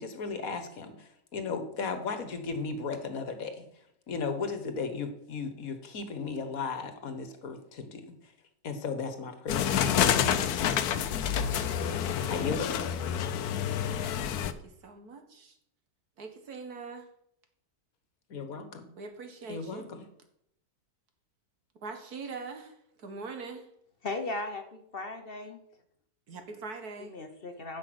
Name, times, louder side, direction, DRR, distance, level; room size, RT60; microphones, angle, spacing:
voice 1, 0.0-3.6 4.1-8.3 8.6-11.5 12.3-13.0 18.3-18.9 19.5-20.0, left 4 dB, 65° left, 8 dB, 1.7 m, -36 dB
sound 1, 9.5-14.5, left 9 dB, 85° left, 1.2 m, -28 dB
voice 2, 13.9-15.6 16.2-17.1 19.0-19.9 21.8-23.7 26.3-27.2, right 4 dB, 80° right, 6 dB, 2.1 m, -43 dB
voice 3, 24.0-25.6 27.0-27.8, left 2 dB, 45° left, 7 dB, 1.0 m, -37 dB
10.0 x 6.0 x 7.8 m, 0.73 s
omnidirectional pair, 1.6 m